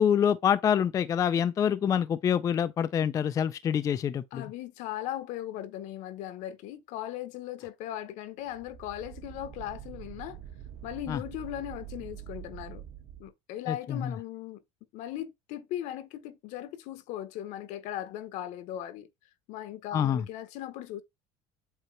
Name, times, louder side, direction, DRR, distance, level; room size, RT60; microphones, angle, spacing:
voice 1, 0.0-4.4 11.1-11.2 13.7-14.1 19.9-20.2, left 8 dB, 25° left, 0.3 m, -26 dB
voice 2, 4.3-10.4 10.8-12.8 13.2-14.6 14.9-19.1 19.5-21.0, left 12 dB, 65° left, 0.9 m, -38 dB
sound 1, 8.4-13.3, right 11 dB, 70° right, 2.2 m, -45 dB
7.9 x 2.8 x 4.4 m
cardioid pair, 150°, 14 cm